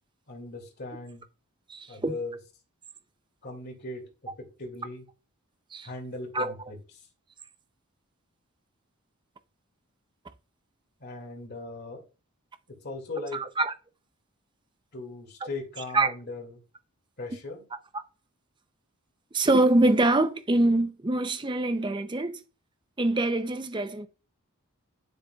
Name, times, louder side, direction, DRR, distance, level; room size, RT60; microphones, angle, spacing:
voice 1, 0.3-1.2 1.9-2.4 3.4-5.0 5.8-7.1 11.0-12.0 12.8-13.4 14.9-16.6 17.2-17.6, left 3 dB, 45° left, 2.2 m, -39 dB
voice 2, 1.7-2.1 5.7-5.9 6.3-6.5 13.6-13.7 15.9-16.1 19.3-22.4 23.0-24.1, right 2 dB, 20° right, 0.5 m, -24 dB
10.0 x 6.7 x 2.3 m
head